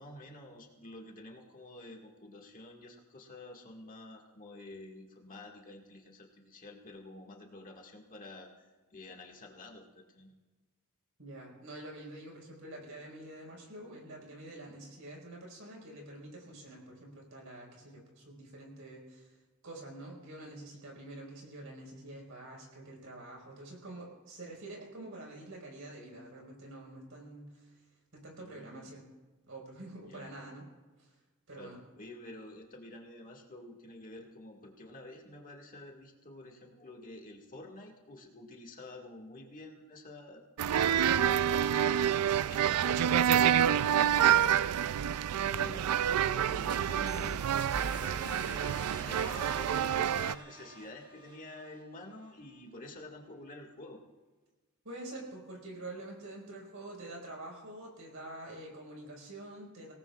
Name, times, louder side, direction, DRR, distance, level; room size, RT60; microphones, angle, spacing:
voice 1, 0.0-10.3 28.4-28.9 30.0-30.3 31.5-45.9 46.2-47.5 47.8-54.0, left 1 dB, 40° left, 0 dB, 1.9 m, -49 dB
voice 2, 11.2-19.4 19.6-27.8 28.1-29.1 29.5-30.7 31.0-31.1 31.5-31.8 54.8-59.9, right 1 dB, 70° right, -1 dB, 4.9 m, -47 dB
sound 1, 40.6-50.4, right 9 dB, 85° right, 0.4 m, -28 dB
sound 2, 46.6-52.3, right 1 dB, 20° right, 1.8 m, -47 dB
25.0 x 18.0 x 2.4 m, 1.3 s
head